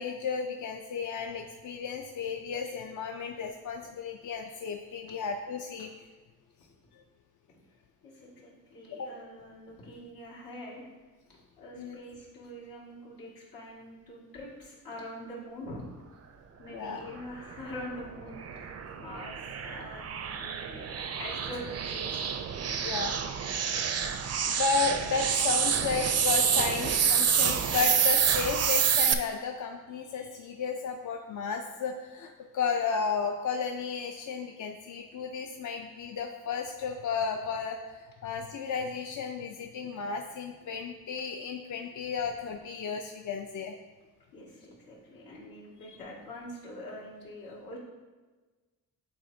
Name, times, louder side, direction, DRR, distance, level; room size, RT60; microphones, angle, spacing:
voice 1, 0.0-5.9 9.0-9.1 11.8-12.0 16.7-17.1 22.8-23.2 24.4-43.7 45.9-46.0, left 5 dB, 60° left, 3 dB, 0.5 m, -33 dB
voice 2, 8.0-10.8 11.3-16.0 16.6-20.9 21.2-22.2 22.8-22.9 42.2-42.3 44.3-47.8, equal, 85° left, -5 dB, 1.9 m, -44 dB
sound 1, 17.6-29.1, right 7 dB, 45° right, 0.4 m, -28 dB
9.6 x 4.2 x 2.7 m, 1.3 s
cardioid pair, 105°, 34 cm